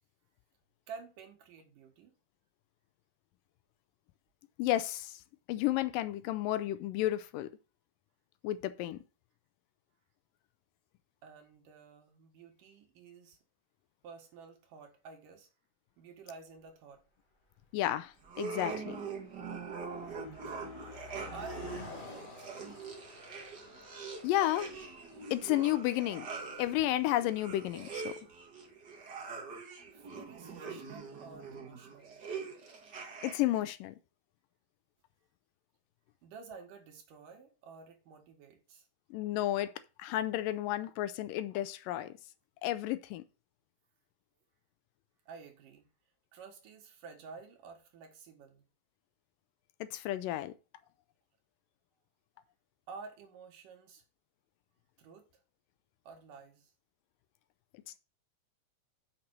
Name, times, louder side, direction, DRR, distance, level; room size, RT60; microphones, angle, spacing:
voice 1, 0.9-2.1 11.2-13.4 14.0-15.5 16.0-17.0 20.5-20.6 21.3-22.5 29.9-32.2 36.2-38.9 45.3-45.9 46.3-48.6 52.9-54.0 55.0-55.4 56.0-56.7, right 5 dB, 70° right, 3.1 m, -51 dB
voice 2, 4.6-5.2 5.5-7.5 8.4-9.0 17.7-19.0 24.2-24.7 25.3-26.3 26.6-28.1 33.2-34.0 39.1-39.7 40.0-42.1 42.6-43.2 49.9-50.5, left 14 dB, 80° left, 2.2 m, -32 dB
Car passing by, 16.6-16.7 17.5-17.7 18.0-28.4, left 3 dB, 40° left, 0.7 m, -52 dB
sound 1, 18.2-33.6, right 5 dB, 45° right, 1.5 m, -43 dB
6.6 x 5.9 x 6.1 m
omnidirectional pair, 4.0 m